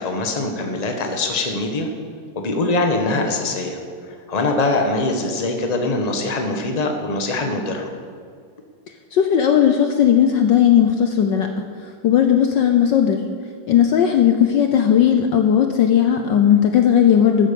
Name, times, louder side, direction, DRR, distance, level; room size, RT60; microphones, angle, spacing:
voice 1, 0.0-1.9 2.3-3.8 4.1-7.9, left 2 dB, 20° left, 3 dB, 1.2 m, -23 dB
voice 2, 9.1-13.2 13.7-17.5, left 9 dB, 65° left, 5 dB, 1.3 m, -16 dB
13.5 x 9.3 x 7.0 m, 2.1 s
omnidirectional pair, 2.4 m